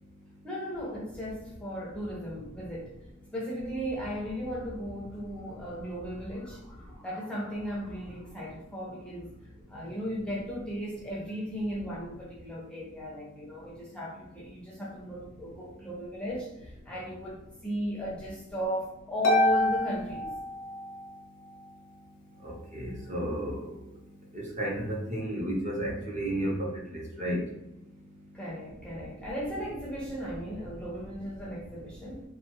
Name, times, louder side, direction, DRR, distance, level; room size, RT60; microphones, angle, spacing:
voice 1, 0.4-2.9 3.3-9.3 9.7-20.4 28.3-32.2, equal, 5° left, -5 dB, 0.5 m, -36 dB
Harp, 19.2-21.1, left 1 dB, 75° left, 0.6 m, -27 dB
voice 2, 22.4-23.7 24.3-26.6 26.9-27.4, right 1 dB, 35° right, -2 dB, 0.7 m, -32 dB
2.9 x 2.3 x 3.0 m, 0.87 s
head